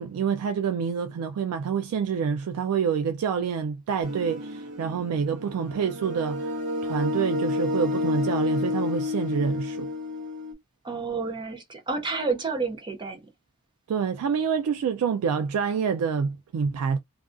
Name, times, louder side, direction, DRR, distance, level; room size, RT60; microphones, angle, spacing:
voice 1, 0.0-6.5 6.8-9.9 13.9-17.0, right 6 dB, 75° right, 0.3 m, -27 dB
sound 1, 4.0-10.5, left 3 dB, 55° right, 0.8 m, -30 dB
voice 2, 10.8-13.2, right 4 dB, 20° right, 0.5 m, -30 dB
2.4 x 2.3 x 2.4 m
head